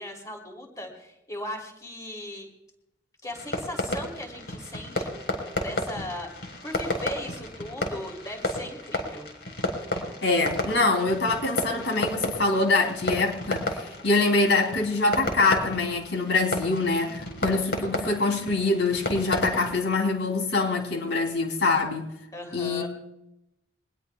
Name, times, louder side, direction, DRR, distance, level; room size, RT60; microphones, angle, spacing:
voice 1, 0.0-2.5 3.2-5.1 5.6-9.3 17.0-17.6 22.3-22.9, left 1 dB, 20° left, 2 dB, 3.2 m, -38 dB
Fireworks, 3.3-19.8, left 1 dB, 65° left, 4.3 m, -33 dB
voice 2, 10.2-22.0 22.5-22.9, left 3 dB, 85° left, 3 dB, 3.2 m, -24 dB
24.0 x 20.0 x 2.3 m, 0.89 s
head